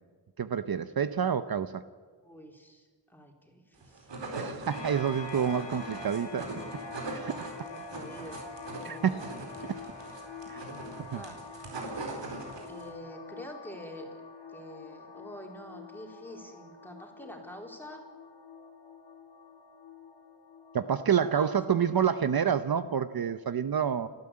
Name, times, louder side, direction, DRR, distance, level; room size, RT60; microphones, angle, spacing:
voice 1, 0.4-1.8 4.4-6.5 7.1-7.3 8.8-9.3 10.5-10.6 11.1-11.2 20.7-24.1, right 8 dB, 55° right, 12 dB, 0.8 m, -28 dB
voice 2, 2.2-4.1 7.7-8.5 8.8-9.6 11.1-11.4 12.7-14.1 14.5-18.0 21.2-21.6, equal, 5° left, 1 dB, 3.9 m, -46 dB
sound 1, 3.8-12.9, right 2 dB, 85° right, 4.2 m, -41 dB
sound 2, 4.7-21.9, left 4 dB, 80° left, 3.9 m, -46 dB
29.5 x 12.5 x 8.7 m, 1.5 s
wide cardioid pair, 105°, 42 cm